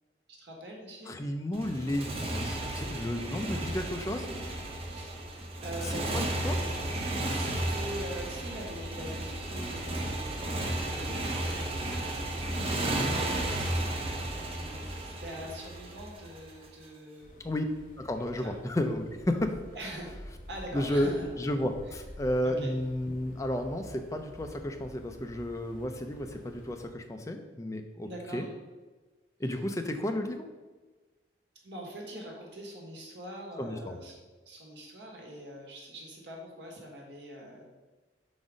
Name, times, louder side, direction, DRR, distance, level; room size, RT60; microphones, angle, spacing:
voice 1, 0.4-1.2 4.8-5.2 5.6-6.4 7.3-10.4 10.8-14.1 14.6-17.4 18.4-18.5 19.7-20.1 20.5-21.3 21.9-22.0 22.4-22.7 28.0-28.5 31.6-34.2 34.4-37.7, right 1 dB, 75° right, -1 dB, 1.4 m, -43 dB
voice 2, 1.1-4.3 5.8-6.6 17.4-17.6 18.0-19.6 20.7-28.4 29.4-30.5 33.6-34.0, left 1 dB, 15° left, 5 dB, 0.4 m, -32 dB
Motorcycle, 1.5-16.7, right 1 dB, 35° right, 0.7 m, -33 dB
sound 1, 17.2-26.9, equal, 50° left, 0.9 m, -49 dB
4.8 x 4.0 x 5.0 m, 1.3 s
head